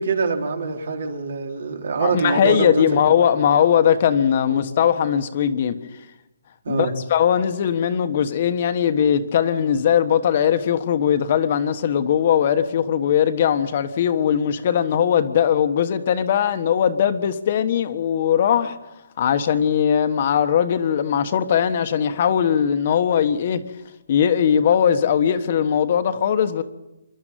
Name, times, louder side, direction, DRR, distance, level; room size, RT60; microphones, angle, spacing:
voice 1, 0.0-3.2 4.4-4.6 6.6-6.9, right 4 dB, 60° right, 3.7 m, -25 dB
voice 2, 2.0-5.7 6.7-18.8 19.2-23.6 24.1-26.6, left 8 dB, 35° left, 1.3 m, -20 dB
27.0 x 12.0 x 9.3 m
hypercardioid pair, 170°, 0 cm